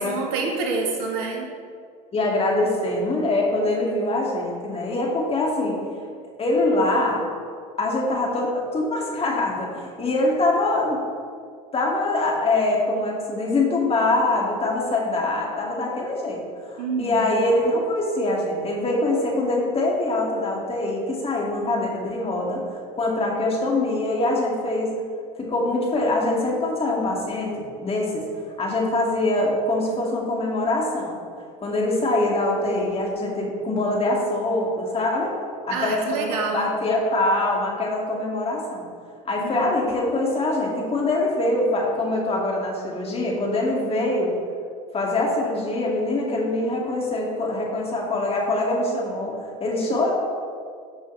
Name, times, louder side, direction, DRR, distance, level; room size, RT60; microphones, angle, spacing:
voice 1, 0.0-1.5 16.8-17.4 35.7-36.8 39.4-39.8, right 4 dB, 75° right, 1 dB, 1.6 m, -28 dB
voice 2, 2.1-5.7 6.4-7.2 7.8-11.0 11.7-24.9 25.4-28.3 28.6-31.2 31.6-35.3 35.6-38.9 39.2-44.3 44.9-50.1, left 2 dB, 30° left, -2 dB, 2.4 m, -24 dB
14.5 x 5.4 x 3.4 m, 2.2 s
hypercardioid pair, 80°, 19 cm